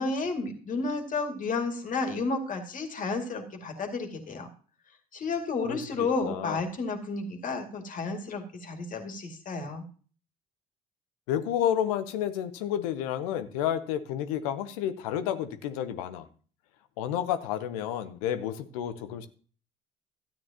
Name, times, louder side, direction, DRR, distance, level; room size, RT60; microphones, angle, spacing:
voice 1, 0.0-4.5 5.1-9.8, left 3 dB, 45° left, 4 dB, 2.2 m, -32 dB
voice 2, 5.7-6.6 11.3-16.3 17.0-19.3, left 10 dB, 75° left, 11 dB, 0.8 m, -31 dB
13.5 x 8.9 x 2.9 m, 0.40 s
hypercardioid pair, 60°, 18 cm